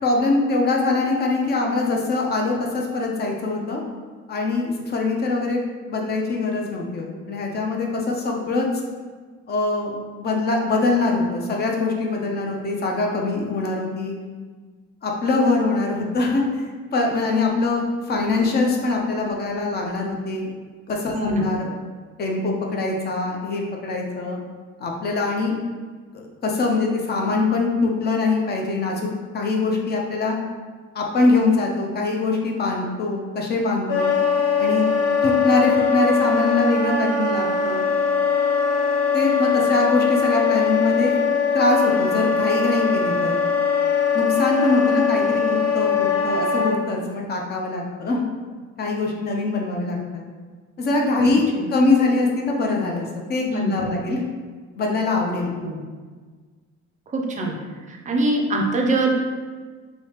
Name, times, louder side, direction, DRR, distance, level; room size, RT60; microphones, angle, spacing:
voice 1, 0.0-3.8 4.3-8.7 9.5-14.1 15.0-20.5 20.9-21.7 22.2-24.4 24.8-25.6 26.1-30.3 30.9-34.1 34.6-34.9 35.2-37.8 39.1-41.2 41.5-43.4 44.1-48.2 48.8-50.2 50.8-54.2 54.8-55.5, left 3 dB, 35° left, 0 dB, 0.5 m, -23 dB
voice 2, 21.1-21.5 51.3-51.7 53.5-54.1 55.6-55.8 57.1-57.6 57.9-59.1, right 2 dB, 25° right, 0 dB, 0.4 m, -24 dB
Wind instrument woodwind instrument, 33.9-46.7, left 5 dB, 65° left, 0.8 m, -21 dB
3.4 x 2.7 x 2.8 m, 1.5 s
cardioid pair, 170°, 30 cm